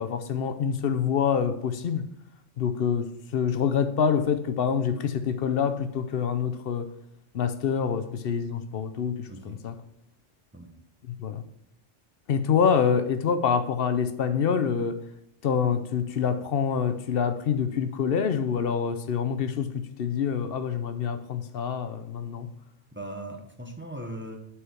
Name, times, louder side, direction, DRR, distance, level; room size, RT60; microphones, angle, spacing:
voice 1, 0.0-2.1 2.6-6.9 7.3-9.8 11.1-11.4 12.3-15.0 15.4-22.5, left 7 dB, 60° left, 0.8 m, -26 dB
voice 2, 9.3-9.6 10.5-10.8 22.9-24.4, right 1 dB, 10° right, 0.7 m, -39 dB
6.5 x 4.7 x 5.9 m
omnidirectional pair, 1.2 m